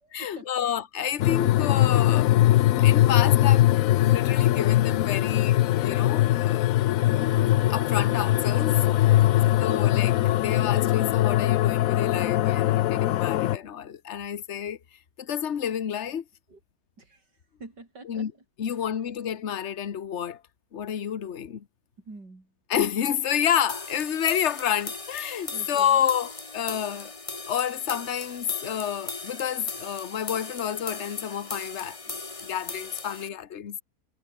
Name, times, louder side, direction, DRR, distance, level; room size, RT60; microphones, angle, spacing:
voice 1, 0.0-2.3 2.8-6.7 7.7-9.3 9.6-14.8 15.2-16.2 18.0-18.3 18.6-20.4 20.7-21.6 22.7-27.1 27.5-32.0 32.4-33.8, left 9 dB, 45° left, 1.3 m, -29 dB
sound 1, 1.2-13.6, left 14 dB, 70° left, 0.8 m, -21 dB
voice 2, 9.2-9.9 16.5-16.6 17.0-17.2 17.6-18.3 22.1-22.5 25.5-26.0, right 3 dB, 70° right, 6.0 m, -46 dB
sound 2, 23.7-33.3, left 3 dB, 20° left, 1.2 m, -38 dB
omnidirectional pair, 1.9 m